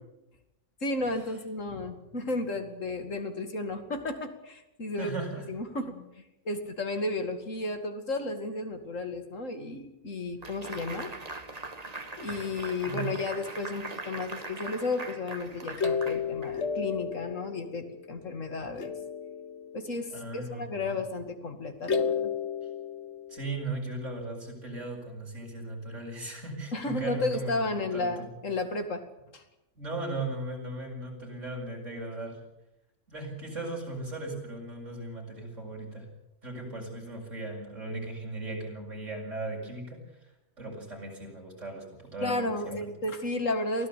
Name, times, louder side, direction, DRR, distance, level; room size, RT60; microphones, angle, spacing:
voice 1, 0.8-5.1 5.5-6.1 6.5-11.1 12.2-18.9 19.7-22.3 26.7-29.0 29.3-29.4 42.2-43.9, left 2 dB, 75° left, 6 dB, 2.7 m, -33 dB
voice 2, 5.0-5.4 12.9-13.0 20.1-21.0 23.3-27.6 27.9-28.4 29.8-32.4 33.1-36.1 36.4-40.0 40.6-41.8 42.1-42.9, right 2 dB, 70° right, 0 dB, 7.3 m, -37 dB
sound 1, 10.4-16.9, right 3 dB, 30° right, 1.6 m, -41 dB
sound 2, 15.8-18.4 18.8-20.2 21.8-23.8, left 6 dB, 60° left, 1.5 m, -33 dB
23.5 x 16.5 x 8.4 m, 0.92 s
omnidirectional pair, 1.3 m